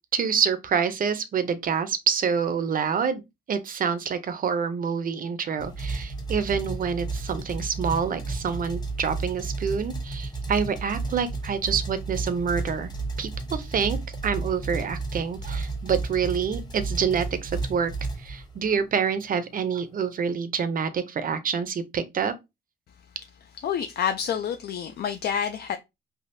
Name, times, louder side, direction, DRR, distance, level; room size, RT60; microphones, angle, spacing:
voice 1, 0.1-3.2 3.5-12.9 13.2-14.0 14.2-17.9 18.2-22.3, right 6 dB, 45° right, 0.6 m, -27 dB
sound 1, 5.6-18.8, right 3 dB, 20° left, 0.9 m, -32 dB
voice 2, 23.6-25.8, left 8 dB, 55° left, 0.4 m, -28 dB
3.4 x 2.3 x 2.6 m
cardioid pair, 90°, 20 cm